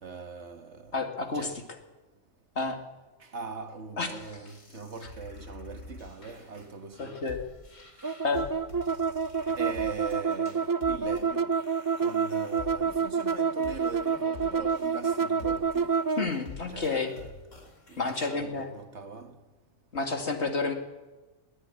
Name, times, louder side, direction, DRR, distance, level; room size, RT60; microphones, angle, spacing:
voice 1, 0.0-0.9 1.3-1.6 3.2-7.2 8.1-8.2 9.6-11.6 12.0-16.0 16.7-17.3 17.9-19.4, right 4 dB, 65° right, 1.8 m, -41 dB
voice 2, 0.9-1.5 2.6-2.8 4.0-4.4 7.0-7.4 8.2-8.5 9.5-9.6 16.2-17.1 18.0-18.7 19.9-20.7, left 4 dB, 60° left, 2.5 m, -30 dB
sound 1, 4.2-18.4, left 3 dB, 85° left, 3.1 m, -48 dB
sound 2, 8.0-16.3, right 5 dB, 35° right, 0.3 m, -28 dB
21.0 x 12.5 x 9.8 m
omnidirectional pair, 1.3 m